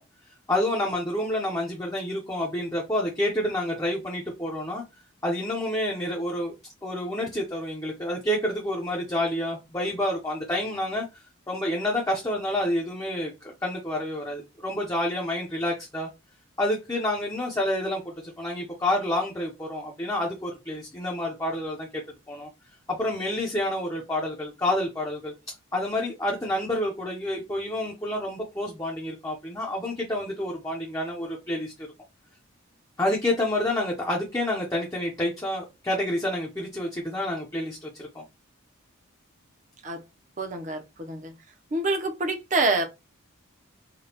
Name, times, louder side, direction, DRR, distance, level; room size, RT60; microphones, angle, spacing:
voice 1, 0.5-4.8 5.2-6.5 6.8-16.1 16.6-22.0 22.3-22.5 22.9-31.9 33.0-38.2, left 1 dB, 15° left, 0.6 m, -29 dB
voice 2, 40.4-41.3 41.7-42.9, right 2 dB, 35° right, 0.6 m, -27 dB
5.0 x 2.2 x 2.9 m
head